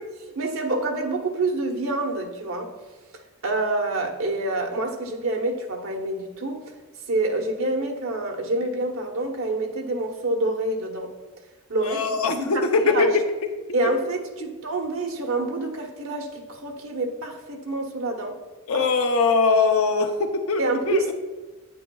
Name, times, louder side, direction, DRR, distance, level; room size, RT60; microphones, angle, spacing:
voice 1, 0.3-2.7 3.4-6.6 7.1-11.1 11.7-13.1 13.7-18.4 18.7-18.8 20.6-21.1, right 2 dB, 70° right, 3 dB, 1.0 m, -27 dB
voice 2, 11.9-13.1 18.7-21.1, left 4 dB, 80° left, 5 dB, 0.6 m, -21 dB
9.0 x 8.8 x 2.3 m, 1.2 s
head